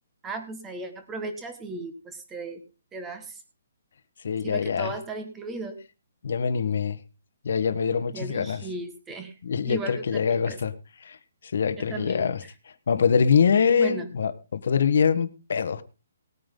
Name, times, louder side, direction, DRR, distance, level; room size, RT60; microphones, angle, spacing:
voice 1, 0.2-2.6 2.9-3.4 4.4-5.8 8.1-9.4 9.7-10.6 11.8-12.5 13.8-14.1, right 3 dB, 10° right, 7 dB, 1.6 m, -36 dB
voice 2, 4.2-4.9 6.2-7.0 7.4-8.6 9.4-10.7 11.0-11.2 11.5-12.4 12.9-15.8, left 6 dB, 60° left, 11 dB, 1.3 m, -24 dB
19.0 x 9.2 x 3.8 m, 0.31 s
hypercardioid pair, 170°, 0 cm